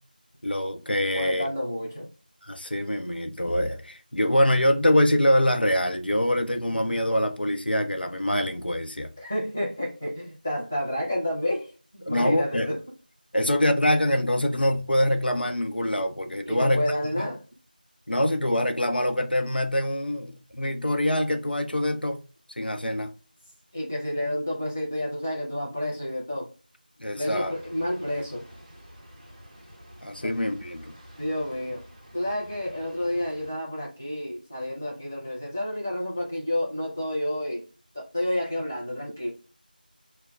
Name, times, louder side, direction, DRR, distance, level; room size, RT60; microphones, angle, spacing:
voice 1, 0.4-1.5 2.4-9.1 12.0-12.7 13.3-17.3 18.1-22.2 22.6-23.1 27.0-27.5 30.0-30.9, left 1 dB, 90° left, 0.7 m, -24 dB
voice 2, 1.1-2.1 9.2-11.7 12.1-12.8 16.5-17.4 23.7-26.5 27.1-28.5 30.2-30.3 31.2-31.8 32.1-37.6 37.9-39.3, left 1 dB, 15° left, 0.5 m, -30 dB
sound 1, 27.3-33.5, equal, 25° right, 0.8 m, -49 dB
6.1 x 2.2 x 2.3 m
figure-of-eight pair, 175°, 5 cm